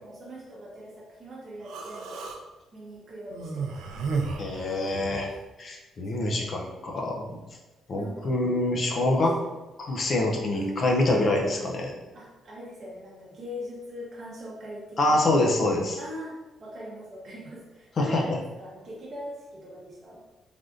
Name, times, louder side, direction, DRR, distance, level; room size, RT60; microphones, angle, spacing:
voice 1, 0.0-2.2 2.7-4.1 6.0-6.6 7.9-8.4 8.9-9.5 10.5-11.1 12.1-15.2 16.0-20.2, equal, 45° right, -6 dB, 0.7 m, -41 dB
Human voice, 1.6-2.4 3.3-5.3, right 4 dB, 85° right, 0.4 m, -33 dB
voice 2, 4.4-5.3 5.6-7.4 7.9-9.4 9.8-12.0 15.0-16.0 18.0-18.2, left 2 dB, 50° left, 0 dB, 0.4 m, -25 dB
3.4 x 2.5 x 2.4 m, 1.1 s
cardioid pair, 90°, 0 cm